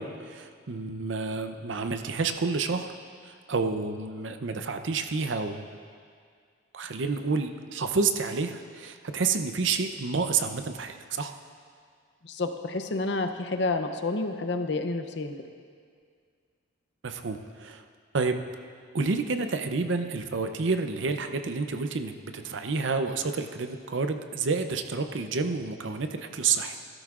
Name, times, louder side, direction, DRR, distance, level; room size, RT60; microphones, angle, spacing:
voice 1, 0.0-2.9 3.3-5.7 6.7-11.3 17.0-17.8 18.1-18.4 18.9-26.8, right 4 dB, 70° right, 7 dB, 0.6 m, -29 dB
voice 2, 12.2-15.3, left 3 dB, 60° left, 6 dB, 0.6 m, -29 dB
14.5 x 12.5 x 2.5 m, 2.1 s
head